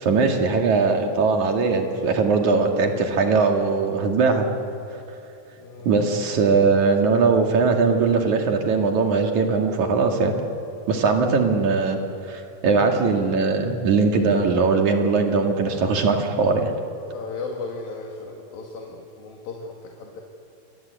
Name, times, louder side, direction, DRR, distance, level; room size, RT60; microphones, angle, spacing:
voice 1, 0.0-4.5 4.9-5.0 5.8-10.3 10.9-12.0 12.3-16.7, right 4 dB, 60° right, 3 dB, 3.4 m, -20 dB
voice 2, 5.6-5.9 17.0-20.2, left 3 dB, 90° left, 0 dB, 3.9 m, -36 dB
29.0 x 24.5 x 8.3 m, 2.7 s
omnidirectional pair, 4.0 m